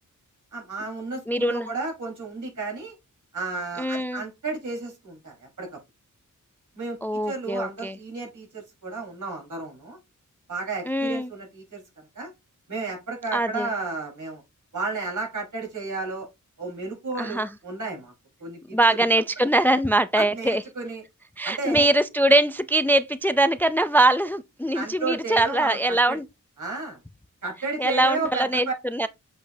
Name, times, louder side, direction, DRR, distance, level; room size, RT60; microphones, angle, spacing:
voice 1, 0.5-2.9 3.3-5.8 6.7-7.0 7.2-10.0 10.5-11.8 12.1-12.3 12.7-14.4 14.7-16.3 16.6-18.1 18.4-18.8 20.1-21.0 21.4-21.9 24.7-26.2 26.6-27.0 27.4-28.7, right 3 dB, 70° right, 4.3 m, -32 dB
voice 2, 1.3-1.7 3.8-4.2 7.0-8.0 10.9-11.3 13.3-13.7 17.2-17.5 18.7-20.6 21.4-26.2 27.8-28.7 28.9-29.1, right 1 dB, 5° left, 0.4 m, -22 dB
7.6 x 5.8 x 2.7 m
wide cardioid pair, 85°, 32 cm